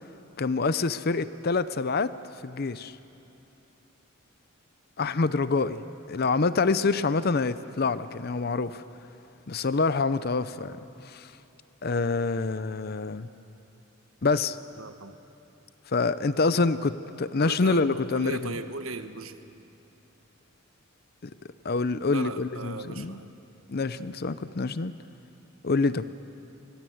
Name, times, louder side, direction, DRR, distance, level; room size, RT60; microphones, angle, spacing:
voice 1, 0.4-2.1 2.4-3.0 5.0-8.8 9.5-10.8 11.0-11.3 11.8-13.3 14.2-14.6 15.9-18.6 21.2-21.3 21.6-23.2 23.7-24.9 25.6-26.1, left 4 dB, 50° left, 14 dB, 0.6 m, -26 dB
voice 2, 14.8-15.2 17.4-19.4 22.1-23.3, right 3 dB, 85° right, 9 dB, 1.3 m, -37 dB
29.0 x 21.0 x 7.9 m, 2.9 s
head